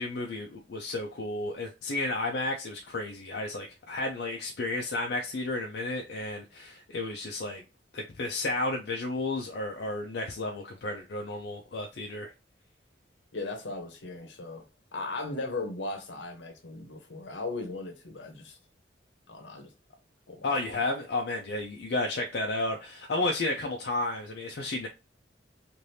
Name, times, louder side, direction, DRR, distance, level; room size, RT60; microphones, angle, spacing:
voice 1, 0.0-7.6 7.9-12.3 20.4-24.9, left 2 dB, 60° left, 0.5 m, -32 dB
voice 2, 13.3-14.6 14.9-18.6 19.3-19.7 20.3-20.5, left 3 dB, 80° left, 0.9 m, -37 dB
3.2 x 2.5 x 2.7 m
head